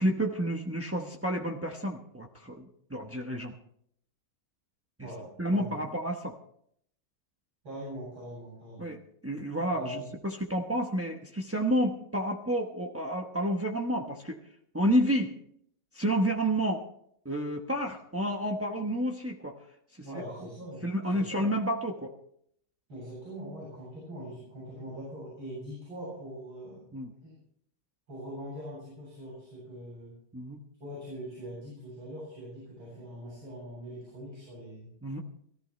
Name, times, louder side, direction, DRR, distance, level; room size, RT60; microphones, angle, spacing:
voice 1, 0.0-3.5 5.0-5.1 5.4-6.3 8.8-9.0 9.2-14.4 14.7-15.4 15.9-16.8 17.2-19.6 19.9-20.0 20.8-22.1 26.9-27.1 30.3-30.6 35.0-35.2, equal, 15° right, 0 dB, 0.5 m, -30 dB
voice 2, 5.0-5.8 7.6-8.9 9.7-10.1 20.0-20.8 21.1-21.5 22.9-26.9 27.2-27.4 28.1-30.1 30.8-34.9, equal, 80° right, -7 dB, 9.0 m, -42 dB
22.5 x 14.0 x 3.3 m, 0.67 s
omnidirectional pair, 2.2 m